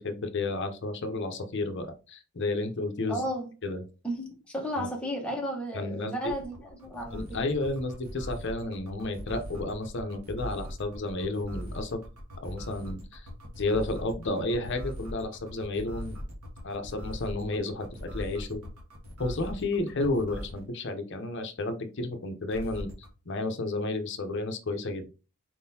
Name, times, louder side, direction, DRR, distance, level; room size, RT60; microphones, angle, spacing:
voice 1, 0.0-3.2 3.6-3.8 4.8-4.9 5.7-6.3 7.1-12.0 12.4-13.3 13.6-16.2 16.6-18.6 19.2-22.9 23.3-25.1, left 2 dB, 55° left, 7 dB, 0.7 m, -32 dB
voice 2, 3.1-3.5 4.0-7.4, equal, 5° left, -1 dB, 1.0 m, -34 dB
sound 1, 6.3-20.7 22.5-23.1, equal, 85° right, 1.5 m, -40 dB
4.4 x 3.7 x 2.7 m, 0.32 s
head